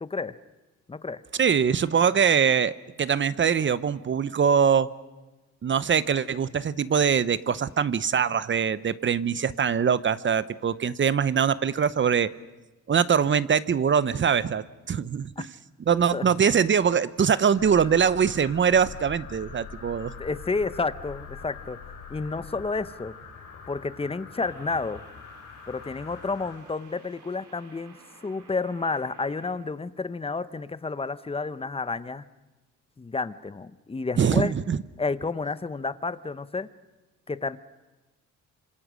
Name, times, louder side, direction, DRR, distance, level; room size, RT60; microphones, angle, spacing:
voice 1, 0.0-0.3 0.9-1.2 14.9-15.4 16.1-16.3 20.2-23.2 23.7-25.0 25.7-27.9 28.2-32.2 33.0-34.5 35.0-36.7 37.3-37.6, left 4 dB, 20° left, 14 dB, 1.0 m, -31 dB
voice 2, 1.4-4.9 5.6-12.3 12.9-15.5 15.9-20.1 34.2-34.8, right 7 dB, 40° right, 16 dB, 0.8 m, -23 dB
sound 1, 17.6-26.6, left 5 dB, 60° left, 4.5 m, -43 dB
sound 2, 24.3-29.5, right 4 dB, 80° right, 5.8 m, -54 dB
27.0 x 26.5 x 6.4 m, 1.1 s
cardioid pair, 90°, 30 cm